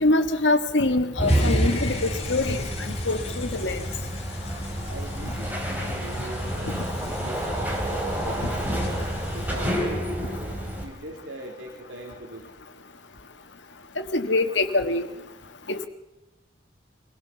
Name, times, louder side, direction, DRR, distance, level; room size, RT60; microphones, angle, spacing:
voice 1, 0.0-3.8 6.7-6.8 14.0-15.1 15.7-15.9, left 2 dB, 75° left, 7 dB, 1.5 m, -24 dB
sound 1, 1.2-10.8, equal, 10° right, 4.0 m, -28 dB
sound 2, 1.3-9.7, left 4 dB, 35° left, 3.0 m, -40 dB
voice 2, 4.8-8.8 9.3-10.1 10.6-12.5, right 1 dB, 80° right, 1 dB, 2.8 m, -41 dB
23.5 x 17.0 x 7.0 m, 1.0 s
head